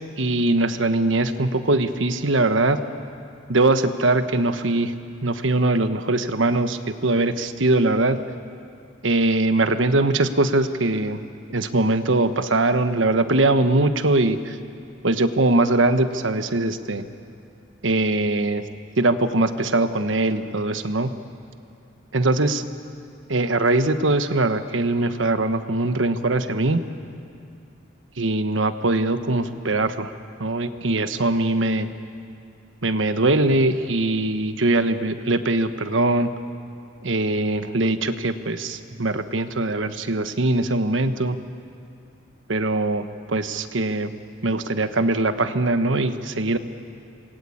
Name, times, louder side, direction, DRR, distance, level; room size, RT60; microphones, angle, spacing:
voice 1, 0.2-2.8 3.5-4.9 5.2-8.2 9.0-11.2 11.5-14.6 15.0-17.0 17.8-18.6 19.0-21.1 22.1-22.6 23.3-26.8 28.2-30.1 30.4-31.9 32.8-36.3 37.0-41.4 42.5-44.1 44.4-46.6, right 2 dB, 80° right, 9 dB, 1.3 m, -21 dB
28.0 x 21.0 x 8.6 m, 2.5 s
head